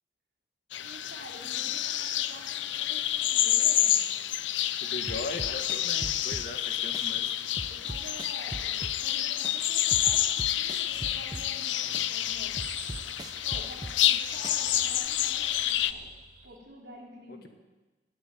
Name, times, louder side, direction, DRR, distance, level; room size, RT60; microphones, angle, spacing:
sound 1, 0.7-15.9, left 12 dB, 80° left, 0.6 m, -29 dB
voice 1, 0.8-3.9 7.7-12.5 13.4-16.1 16.4-17.5, right 1 dB, 65° right, -2 dB, 4.0 m, -48 dB
voice 2, 4.8-7.3 17.3-17.5, left 2 dB, 55° left, 4 dB, 1.7 m, -39 dB
sound 2, 5.1-6.7 6.9-9.2 9.4-11.7 11.9-14.2 14.4-15.1, right 1 dB, 20° right, 0.6 m, -39 dB
sound 3, 10.9-16.6, right 4 dB, 50° right, 2.0 m, -51 dB
18.5 x 8.1 x 9.4 m, 1.2 s
head